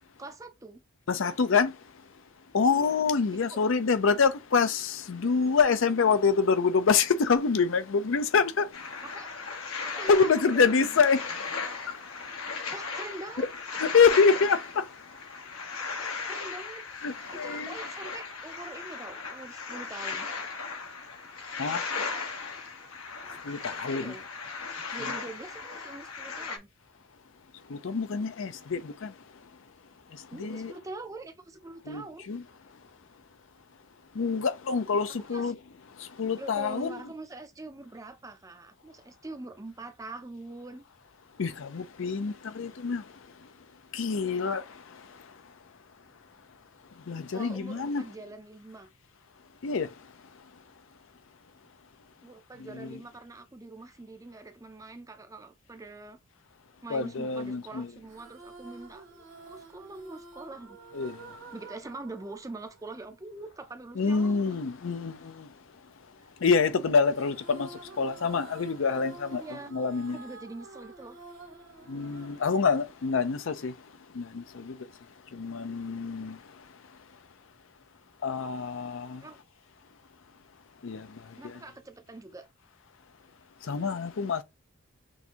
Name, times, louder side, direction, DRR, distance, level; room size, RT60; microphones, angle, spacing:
voice 1, 0.2-0.8 2.6-3.0 3.5-3.6 9.0-9.3 9.8-11.0 12.7-13.5 16.2-16.8 17.3-20.3 23.9-24.2 24.9-26.7 30.3-32.3 35.3-35.5 36.4-40.8 47.3-48.9 52.2-56.2 56.8-60.8 61.5-64.6 66.2-66.3 69.4-69.7 70.1-71.2 79.2-79.4 81.4-82.5, right 2 dB, 15° right, 0.5 m, -43 dB
voice 2, 1.1-1.8 2.5-8.9 10.1-11.4 11.9-12.0 13.4-14.9 16.9-17.8 21.6-21.8 23.4-24.2 25.0-25.1 27.7-29.1 30.1-30.7 31.9-32.4 34.1-35.6 36.0-37.0 41.4-43.1 43.9-45.2 47.1-48.1 49.6-49.9 52.6-53.0 56.9-57.9 60.9-61.3 63.9-65.5 66.4-70.2 71.9-73.8 74.1-74.9 75.3-76.4 78.2-79.2 80.8-81.6 83.6-84.4, left 5 dB, 65° left, 0.5 m, -26 dB
sound 1, 8.7-26.6, left 4 dB, 85° left, 1.3 m, -37 dB
sound 2, 58.1-63.6 67.1-73.5, right 3 dB, 55° right, 1.2 m, -49 dB
6.2 x 2.6 x 2.8 m
head